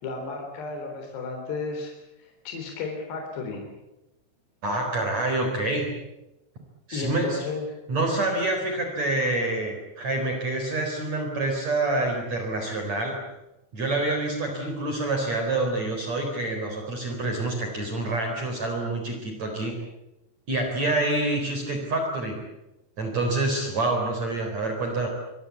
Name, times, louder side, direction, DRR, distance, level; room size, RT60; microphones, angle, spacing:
voice 1, 0.0-1.9 2.2-3.7 6.9-7.7, left 4 dB, 60° left, 2 dB, 5.6 m, -33 dB
voice 2, 4.6-5.9 6.9-7.4 7.9-13.2 13.7-19.7 20.5-22.4 23.0-25.1, right 2 dB, 35° right, 3 dB, 4.9 m, -27 dB
25.0 x 23.0 x 8.4 m, 0.96 s
omnidirectional pair, 5.7 m